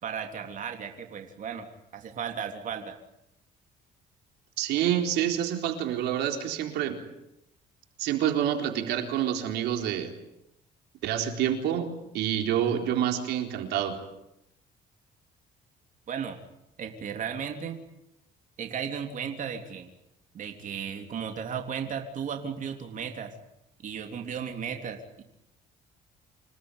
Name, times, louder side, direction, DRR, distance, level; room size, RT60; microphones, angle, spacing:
voice 1, 0.0-3.0 16.1-16.4 16.8-17.8 18.6-19.9 20.3-23.3 23.8-25.2, right 7 dB, 50° right, 4 dB, 3.5 m, -35 dB
voice 2, 4.6-7.0 8.0-10.1 11.0-14.0, right 10 dB, 85° right, 4 dB, 4.1 m, -27 dB
28.0 x 18.5 x 10.0 m, 0.83 s
cardioid pair, 110°, 17 cm